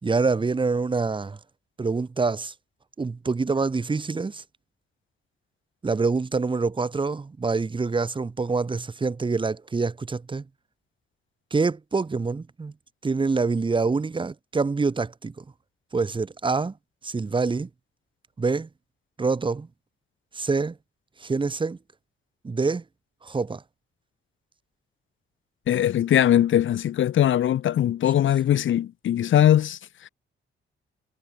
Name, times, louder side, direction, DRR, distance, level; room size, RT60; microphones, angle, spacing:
voice 1, 0.0-1.4 1.8-2.5 3.0-4.4 5.8-10.4 11.5-12.7 13.0-15.4 15.9-16.7 17.0-17.7 18.4-18.7 19.2-19.7 20.3-20.8 21.2-21.8 22.4-22.8 23.2-23.6, right 4 dB, 25° right, 2.3 m, -26 dB
voice 2, 25.7-29.8, left 11 dB, 70° left, 1.5 m, -20 dB
cardioid pair, 145°, 21 cm